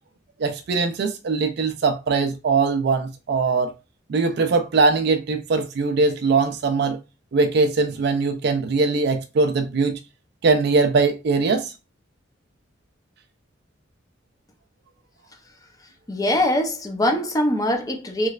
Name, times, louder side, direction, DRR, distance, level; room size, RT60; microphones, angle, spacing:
voice 1, 0.4-3.7 4.1-7.0 7.3-10.0 10.4-11.7, right 4 dB, 60° right, 0.4 m, -21 dB
voice 2, 16.1-18.3, left 1 dB, 20° left, 0.6 m, -22 dB
3.1 x 3.0 x 2.4 m
head